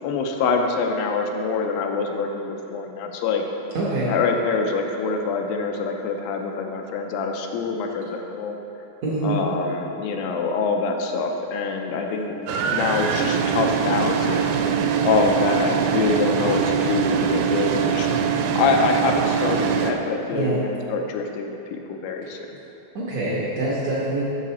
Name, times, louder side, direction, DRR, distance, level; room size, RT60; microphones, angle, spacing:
voice 1, 0.0-3.4 4.1-8.6 9.2-12.3 12.7-14.5 15.0-18.1 18.6-22.4, left 4 dB, 80° left, 3 dB, 2.3 m, -25 dB
voice 2, 3.7-4.1 9.0-9.4 20.3-20.6 22.2-22.3 22.9-24.2, right 2 dB, 65° right, -7 dB, 1.7 m, -25 dB
sound 1, 12.1-12.9 13.2-17.8, equal, 50° left, 1.2 m, -42 dB
sound 2, 12.5-19.9, right 7 dB, 80° right, 2.2 m, -23 dB
7.4 x 6.8 x 4.2 m, 3.0 s
omnidirectional pair, 4.2 m